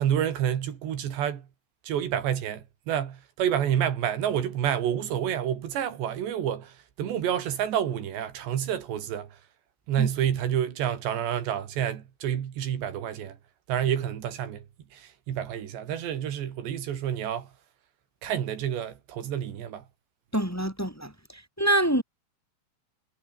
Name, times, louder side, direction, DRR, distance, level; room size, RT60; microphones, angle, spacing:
voice 1, 0.0-1.5 1.8-9.3 9.9-13.4 13.7-14.6 14.9-17.5 18.2-19.8, right 9 dB, 90° right, 4.8 m, -29 dB
voice 2, 20.3-21.1 21.6-22.0, right 1 dB, 5° left, 4.7 m, -25 dB
omnidirectional pair, 4.8 m